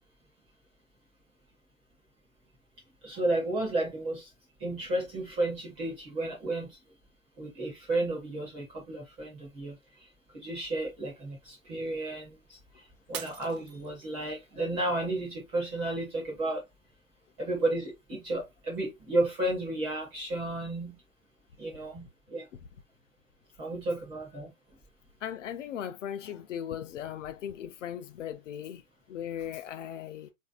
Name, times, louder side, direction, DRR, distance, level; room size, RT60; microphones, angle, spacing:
voice 1, 3.0-4.3 4.6-6.8 7.4-10.1 10.3-16.6 17.4-21.0 21.6-22.5 23.6-24.5, right 2 dB, 10° right, 0.5 m, -32 dB
Shatter, 13.1-14.4 15.0-15.4 16.0-16.1, right 8 dB, 65° right, 0.8 m, -42 dB
voice 2, 25.2-30.3, left 9 dB, 65° left, 0.5 m, -38 dB
4.0 x 2.6 x 2.3 m
hypercardioid pair, 165°, 40 cm